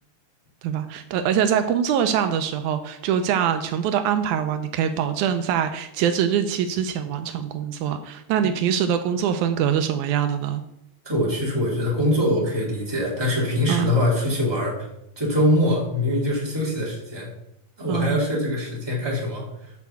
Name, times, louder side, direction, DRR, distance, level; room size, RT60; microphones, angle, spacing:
voice 1, 0.6-10.6 13.7-13.9 17.9-18.2, right 8 dB, 80° right, 8 dB, 2.0 m, -23 dB
voice 2, 11.0-14.9 15.2-17.3 17.8-19.7, left 1 dB, 10° right, -5 dB, 2.3 m, -23 dB
8.4 x 4.7 x 6.8 m, 0.80 s
omnidirectional pair, 3.5 m